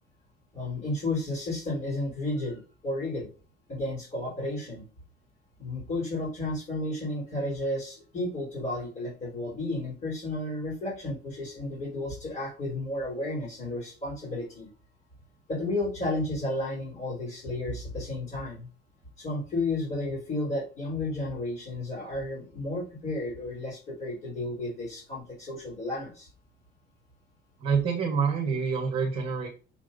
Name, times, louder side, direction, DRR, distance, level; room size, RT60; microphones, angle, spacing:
voice 1, 0.5-3.3 3.7-4.8 5.6-14.7 15.5-18.7 19.2-26.3, left 2 dB, 45° left, -7 dB, 3.8 m, -32 dB
voice 2, 27.6-29.5, right 5 dB, 30° right, 0 dB, 1.4 m, -27 dB
7.0 x 6.1 x 2.7 m, 0.36 s
cardioid pair, 165°, 19 cm